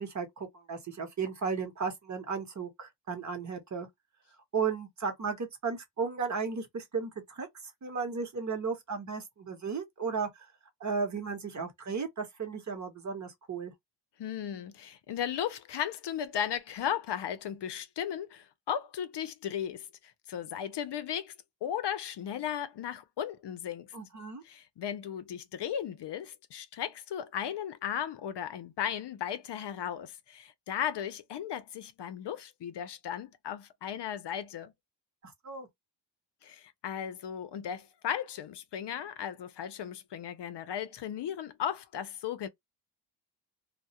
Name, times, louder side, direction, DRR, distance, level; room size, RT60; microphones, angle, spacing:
voice 1, 0.0-3.9 4.5-7.5 7.8-10.5 10.8-13.7 23.9-24.4 35.2-35.7, right 5 dB, 40° right, 0.8 m, -35 dB
voice 2, 14.2-21.3 21.6-23.9 24.4-34.7 36.4-42.5, left 9 dB, 65° left, 0.6 m, -36 dB
2.3 x 2.1 x 2.7 m
wide cardioid pair, 140°, 45 cm